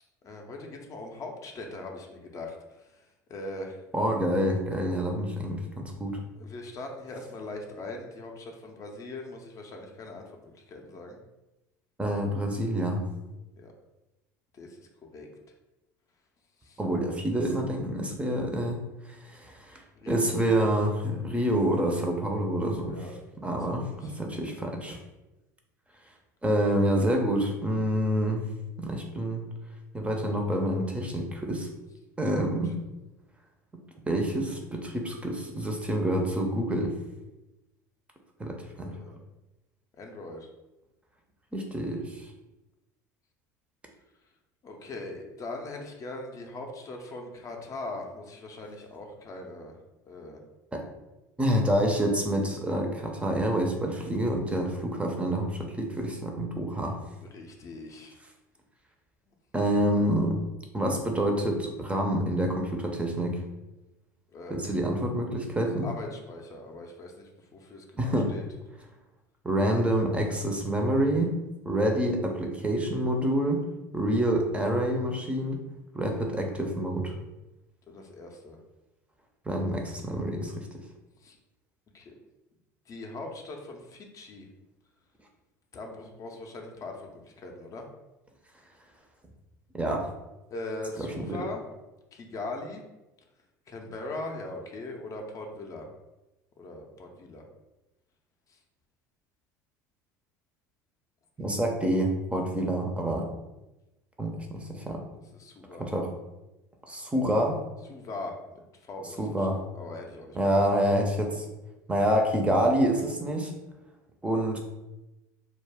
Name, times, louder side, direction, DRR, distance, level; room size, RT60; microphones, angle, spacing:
voice 1, 0.2-3.8 6.3-11.2 13.6-13.7 14.5-15.3 16.6-16.8 20.0-20.9 22.9-23.1 23.4-24.2 32.3-32.7 38.8-39.2 40.0-40.5 44.6-49.8 50.1-50.4 57.2-58.2 64.3-64.7 65.8-68.4 77.9-78.6 81.2-81.4 81.9-82.2 82.9-84.5 85.7-87.9 90.5-91.6 92.1-92.8 93.7-95.9 96.6-97.4 98.5-98.6 105.4-105.9 107.9-109.5 109.7-110.6, left 2 dB, 40° left, 2 dB, 0.5 m, -41 dB
voice 2, 3.9-6.2 12.0-13.0 16.8-23.0 23.4-25.0 26.4-28.5 28.8-29.5 29.9-31.7 32.2-32.7 34.1-36.9 38.4-39.0 41.5-42.3 50.7-50.8 51.4-57.0 59.5-60.4 60.7-63.4 64.5-65.9 68.0-68.3 69.4-71.3 71.6-73.6 73.9-75.6 75.9-77.1 79.5-80.7 89.7-90.1 91.0-91.4 101.4-103.3 104.2-105.0 105.8-106.1 106.9-107.6 109.2-109.6 110.3-111.5 111.9-113.5 114.2-114.6, right 1 dB, 15° right, 2 dB, 0.5 m, -27 dB
2.3 x 2.1 x 3.4 m, 1.0 s
hypercardioid pair, 75°, 9 cm